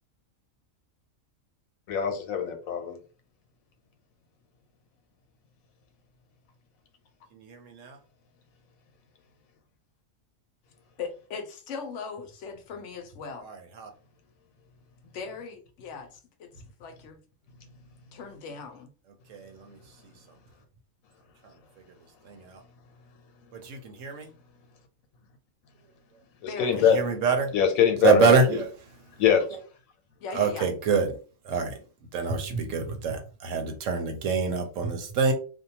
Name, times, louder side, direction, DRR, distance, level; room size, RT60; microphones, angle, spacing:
voice 1, 1.9-3.0 26.6-27.0 27.5-28.6 29.2-29.5, left 8 dB, 90° left, 1.1 m, -23 dB
voice 2, 7.3-8.0 13.4-13.9 19.3-19.8 22.3-22.6 23.5-24.3 26.8-27.5 28.0-28.7 30.3-31.1 31.4-31.8 32.1-35.3, right 5 dB, 70° right, 1.0 m, -26 dB
voice 3, 11.0-13.5 15.0-16.5 16.8-17.2 18.1-18.9 26.5-26.9 30.2-30.7, left 5 dB, 70° left, 0.8 m, -39 dB
2.6 x 2.2 x 2.8 m
omnidirectional pair, 1.4 m